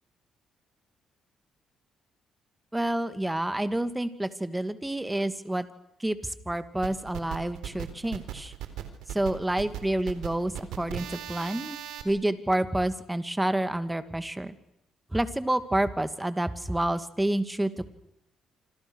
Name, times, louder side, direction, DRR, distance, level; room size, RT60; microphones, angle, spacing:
voice 1, 2.7-5.7 6.0-8.5 9.1-11.8 12.0-14.5 15.1-17.7, right 1 dB, 10° right, 11 dB, 2.5 m, -28 dB
sound 1, 6.8-12.0, right 11 dB, 90° right, 3.9 m, -38 dB
27.5 x 26.5 x 6.5 m, 0.81 s
cardioid pair, 90°, 0 cm